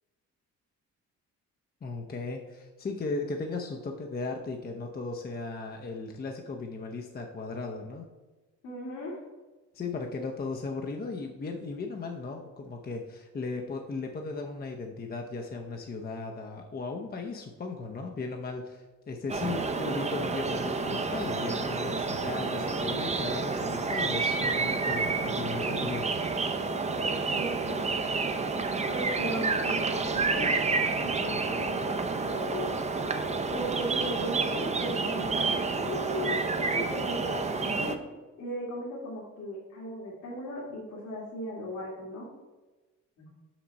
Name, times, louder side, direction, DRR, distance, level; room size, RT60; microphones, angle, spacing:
voice 1, 1.8-8.1 9.7-26.1, left 3 dB, 30° left, 2 dB, 0.7 m, -36 dB
voice 2, 8.6-9.2 26.9-28.0 28.9-32.8 33.5-35.5 35.7-38.1 38.4-42.3 43.2-43.3, equal, 75° left, -6 dB, 2.1 m, -37 dB
sound 1, 19.3-38.0, right 4 dB, 20° right, 0.6 m, -29 dB
6.0 x 5.9 x 4.1 m, 1.2 s
cardioid pair, 90°, 30 cm